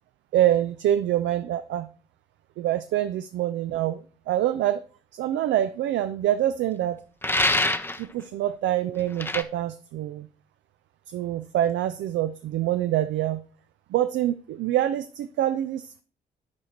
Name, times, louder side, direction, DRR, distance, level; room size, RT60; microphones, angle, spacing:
voice 1, 0.3-1.9 2.6-4.8 5.1-7.0 7.5-7.6 8.0-10.3 11.1-13.4 13.9-16.0, right 12 dB, 65° right, 10 dB, 0.5 m, -25 dB
sound 1, 7.2-8.0 9.2-9.4, left 1 dB, 10° left, 0.7 m, -24 dB
9.7 x 5.0 x 4.3 m, 0.39 s
hypercardioid pair, 45°, 21 cm